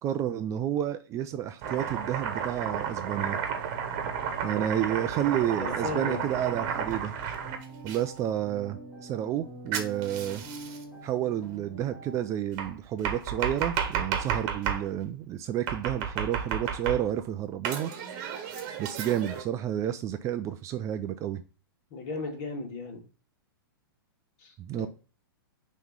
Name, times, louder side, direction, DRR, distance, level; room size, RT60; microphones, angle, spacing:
voice 1, 0.0-3.4 4.4-7.1 7.8-10.4 11.0-17.9 18.8-21.4 24.6-24.9, right 11 dB, 25° right, 10 dB, 0.4 m, -30 dB
Domestic sounds home sounds, 1.6-8.0 9.7-10.8 12.6-14.9 15.7-17.2 17.6-19.4, right 7 dB, 40° right, 1.2 m, -32 dB
voice 2, 5.6-6.2 21.9-23.0 24.4-24.5 24.8-24.9, left 3 dB, 45° left, 2 dB, 2.1 m, -35 dB
sound 1, 6.1-12.3, right 2 dB, 5° right, 2.7 m, -46 dB
5.7 x 3.1 x 5.3 m, 0.34 s
hypercardioid pair, 130°, 12 cm